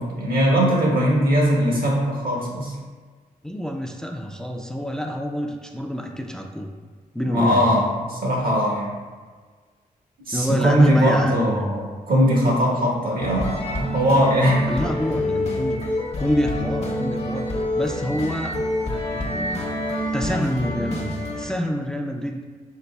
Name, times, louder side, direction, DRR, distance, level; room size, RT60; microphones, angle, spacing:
voice 1, 0.0-2.7 7.2-8.9 10.3-14.7, equal, 70° right, -2 dB, 1.2 m, -20 dB
voice 2, 3.4-6.7 7.1-7.8 10.3-11.7 14.7-15.9 16.2-19.7 20.1-22.4, equal, 5° left, 2 dB, 0.4 m, -27 dB
sound 1, 13.2-21.6, left 1 dB, 45° left, 0.8 m, -27 dB
4.6 x 4.0 x 2.3 m, 1.5 s
cardioid pair, 75°, 15 cm